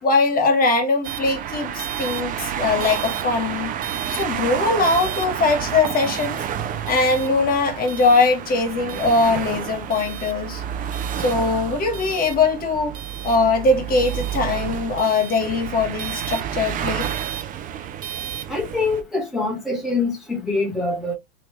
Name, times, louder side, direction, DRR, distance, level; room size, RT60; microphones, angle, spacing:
voice 1, 0.0-3.7 4.1-6.4 6.8-10.6 11.1-13.0 13.2-17.1, left 3 dB, 25° left, 1.4 m, -21 dB
sound 1, 1.0-19.0, right 9 dB, 25° right, 0.5 m, -29 dB
voice 2, 18.5-21.1, left 3 dB, ahead, 0.9 m, -24 dB
3.1 x 2.9 x 3.0 m
hypercardioid pair, 120°, 32 cm